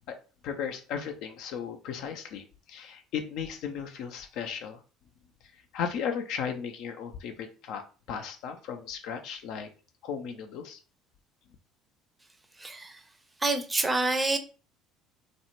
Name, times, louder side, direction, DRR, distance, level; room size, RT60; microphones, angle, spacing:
voice 1, 0.4-4.8 5.7-9.7 10.0-10.8, left 7 dB, 60° left, 0.4 m, -36 dB
voice 2, 12.6-13.0 13.4-14.4, right 2 dB, 15° right, 0.5 m, -27 dB
2.4 x 2.0 x 2.9 m
hypercardioid pair, 65°, 0 cm